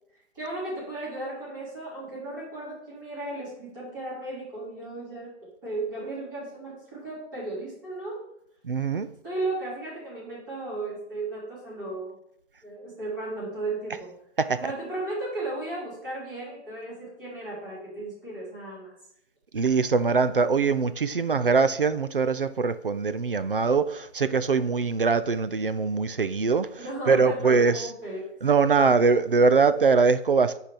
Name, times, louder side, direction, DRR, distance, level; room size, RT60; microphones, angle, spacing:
voice 1, 0.3-5.3 5.6-8.2 9.2-12.2 12.6-14.1 14.6-18.9 26.8-28.3, right 2 dB, 15° right, -10 dB, 3.8 m, -35 dB
voice 2, 8.6-9.1 14.4-14.6 19.5-26.7 27.1-27.9 28.4-30.6, right 4 dB, 50° right, 12 dB, 0.5 m, -22 dB
9.8 x 4.6 x 5.1 m, 0.74 s
hypercardioid pair, 180°, 35 cm